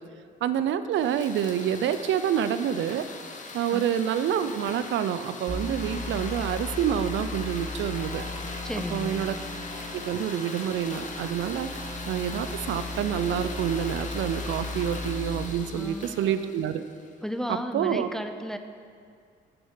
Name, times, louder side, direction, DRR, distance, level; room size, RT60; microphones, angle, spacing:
voice 1, 0.4-3.1 3.5-8.2 8.9-9.4 9.9-16.8 17.5-18.1, right 9 dB, 70° right, 12 dB, 0.4 m, -28 dB
sound 1, 1.0-17.1, left 3 dB, 40° left, 1.0 m, -40 dB
sound 2, 5.5-15.5, left 1 dB, 15° right, 1.2 m, -37 dB
voice 2, 8.6-9.4 15.7-16.6 17.2-18.6, equal, ahead, 8 dB, 0.5 m, -34 dB
7.7 x 6.8 x 5.6 m, 2.2 s
cardioid pair, 90°, 20 cm